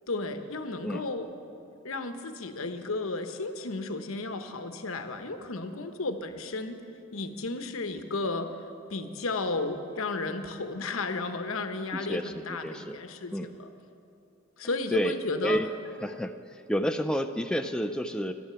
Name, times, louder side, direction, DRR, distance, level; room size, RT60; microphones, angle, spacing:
voice 1, 0.1-1.3 1.8-6.8 7.1-8.5 8.9-13.7 14.6-15.6, left 3 dB, 80° left, 8 dB, 1.0 m, -33 dB
voice 2, 11.9-13.0 13.3-13.5 14.9-15.1 15.4-15.7 16.0-16.3 16.7-18.3, equal, 5° left, 6 dB, 0.3 m, -29 dB
12.5 x 12.0 x 6.9 m, 2.6 s
head